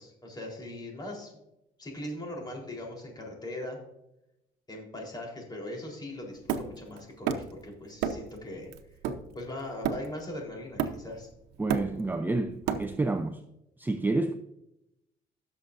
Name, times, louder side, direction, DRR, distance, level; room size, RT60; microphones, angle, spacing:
voice 1, 0.0-1.3 1.8-3.8 4.7-8.7 9.3-11.3, left 1 dB, 25° left, 4.0 m, -40 dB
Hammer, 6.5-7.6 8.0-8.4 8.7-10.3 10.8-11.2 11.5-13.2, right 8 dB, 85° right, 0.9 m, -32 dB
voice 2, 11.6-13.4 13.8-14.3, right 2 dB, 10° right, 0.6 m, -29 dB
16.0 x 7.0 x 2.6 m
cardioid pair, 110°, 17 cm